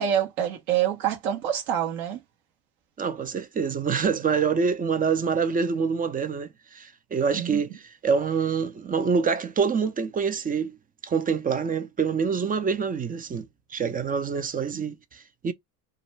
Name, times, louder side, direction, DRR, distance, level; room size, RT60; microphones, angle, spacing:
voice 1, 0.0-2.2 7.3-7.6 14.7-14.8, right 10 dB, 65° right, 1.0 m, -26 dB
voice 2, 3.0-10.8 11.0-15.5, right 5 dB, 20° right, 0.4 m, -26 dB
2.4 x 2.2 x 3.1 m
hypercardioid pair, 80°, 43 cm